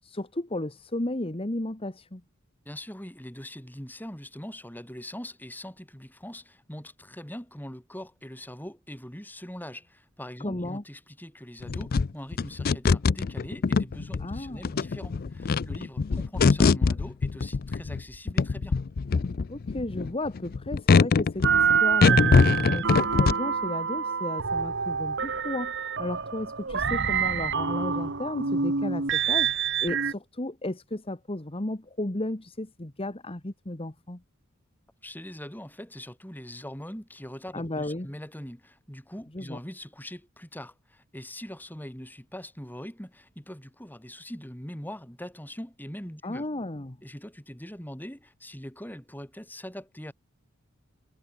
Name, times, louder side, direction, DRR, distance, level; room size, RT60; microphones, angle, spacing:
voice 1, 0.0-2.2 10.4-10.8 14.2-14.7 19.5-34.2 37.5-38.1 39.3-39.6 46.2-47.0, left 1 dB, 25° left, 1.5 m, -34 dB
voice 2, 2.7-18.8 35.0-46.5 47.0-50.1, equal, 10° left, 6.9 m, -42 dB
sound 1, 11.6-18.0 18.3-23.3, left 4 dB, 45° left, 0.4 m, -23 dB
sound 2, 21.4-30.1, right 6 dB, 60° right, 1.9 m, -26 dB
head